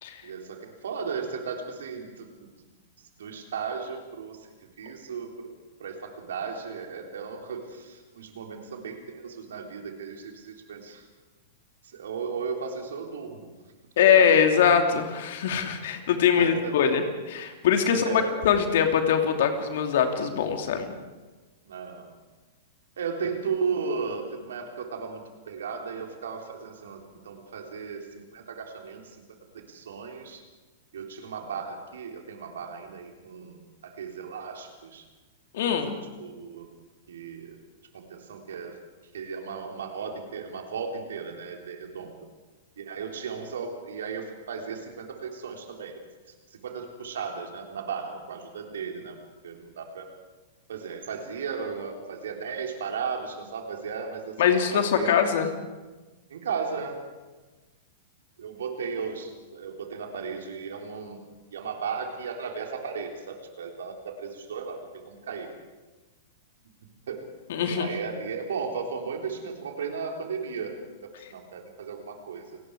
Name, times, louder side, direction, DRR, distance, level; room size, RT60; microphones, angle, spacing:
voice 1, 0.2-2.3 3.2-4.5 4.8-5.5 5.8-11.1 11.9-13.5 16.4-17.0 17.9-18.4 21.7-22.1 23.0-29.0 29.5-30.4 30.9-35.0 35.9-36.7 37.1-37.6 37.9-38.8 39.1-42.2 42.8-46.0 46.6-49.2 49.4-50.1 50.7-54.3 54.7-55.2 56.3-57.0 58.4-61.2 61.5-65.5 67.1-67.2 67.7-70.8 71.0-72.6, right 5 dB, 70° right, 2 dB, 3.7 m, -35 dB
voice 2, 14.0-17.0 17.3-20.9 35.5-36.0 54.4-55.5 67.5-67.9, left 7 dB, 60° left, 5 dB, 2.7 m, -22 dB
29.0 x 19.5 x 4.9 m, 1.2 s
figure-of-eight pair, 105°, 0 cm